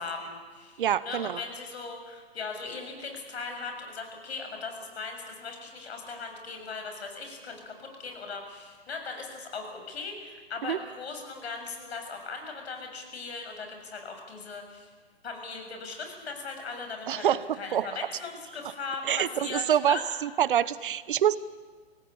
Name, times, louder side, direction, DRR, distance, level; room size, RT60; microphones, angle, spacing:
voice 1, 0.0-14.9 15.2-17.3 17.5-20.0, left 4 dB, 70° left, 4 dB, 7.0 m, -39 dB
voice 2, 0.8-1.4 10.7-10.8 17.1-17.9 19.1-21.4, right 10 dB, 50° right, 17 dB, 0.9 m, -26 dB
26.5 x 18.5 x 8.7 m, 1.5 s
hypercardioid pair, 160°, 33 cm